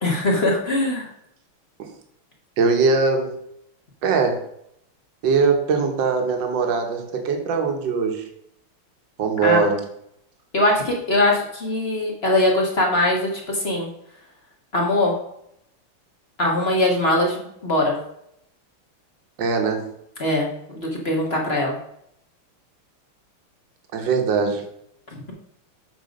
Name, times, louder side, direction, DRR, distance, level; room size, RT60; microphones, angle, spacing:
voice 1, 0.0-1.1 9.4-9.6 10.5-13.9 14.7-15.2 16.4-17.9 20.2-21.8, left 1 dB, 30° left, -1 dB, 1.4 m, -21 dB
voice 2, 2.6-3.4 4.0-4.4 5.2-8.2 9.2-9.8 19.4-19.9 23.9-24.6, right 4 dB, 60° right, 4 dB, 1.8 m, -21 dB
7.7 x 4.6 x 5.2 m, 0.75 s
omnidirectional pair, 2.4 m